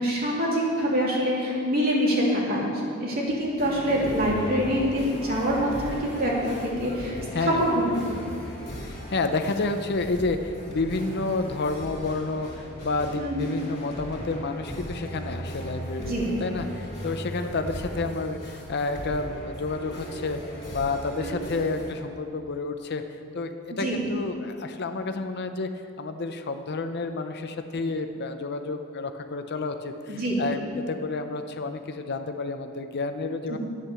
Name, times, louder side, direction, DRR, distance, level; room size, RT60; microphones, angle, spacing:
voice 1, 0.0-2.7 3.0-6.3 6.6-7.1 7.4-7.8 8.1-8.2 13.2-13.5 16.0-16.3 21.1-21.4 23.7-24.0 30.1-30.4 33.5-33.6, equal, 45° right, -4 dB, 3.0 m, -25 dB
sound 1, 3.6-21.9, equal, 30° left, 2.9 m, -38 dB
voice 2, 7.3-7.6 8.8-20.4 20.7-23.0 23.3-25.7 26.0-33.6, left 3 dB, 50° left, 7 dB, 0.6 m, -30 dB
11.0 x 9.4 x 6.9 m, 2.4 s
head